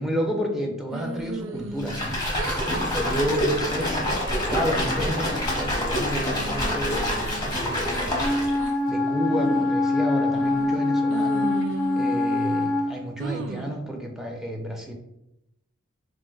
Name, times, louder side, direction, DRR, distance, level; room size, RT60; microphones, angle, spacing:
voice 1, 0.0-2.2 2.9-4.0 4.5-8.2 8.9-11.5 12.0-14.9, equal, 5° right, 1 dB, 0.4 m, -30 dB
sound 1, 0.9-2.1 2.3-2.8 3.2-3.6 4.1-4.7 5.2-5.9 6.3-8.1 8.6-8.7 9.3-9.7 10.3-10.8 11.1-12.7 13.2-13.8, right 3 dB, 90° right, 0.4 m, -36 dB
sound 2, 1.8-8.7, left 1 dB, 20° left, 0.9 m, -26 dB
Wind instrument woodwind instrument, 8.2-13.0, left 2 dB, 80° left, 0.5 m, -24 dB
4.1 x 2.4 x 2.3 m, 0.85 s
head